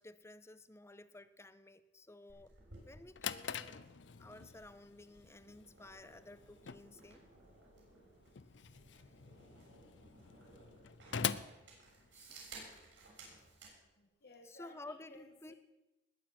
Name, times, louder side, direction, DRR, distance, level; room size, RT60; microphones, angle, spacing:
voice 1, 0.0-2.5 2.8-3.8 4.2-7.2 12.1-12.4 14.4-15.5, left 2 dB, 15° left, 14 dB, 0.7 m, -54 dB
sound 1, 2.3-13.8, right 3 dB, 90° right, 6.6 m, -58 dB
Drawer open or close, 2.8-12.6, left 7 dB, 85° left, 0.6 m, -45 dB
voice 2, 14.0-15.5, left 1 dB, 60° left, 3 dB, 1.7 m, -58 dB
20.5 x 8.9 x 6.0 m, 1.0 s
head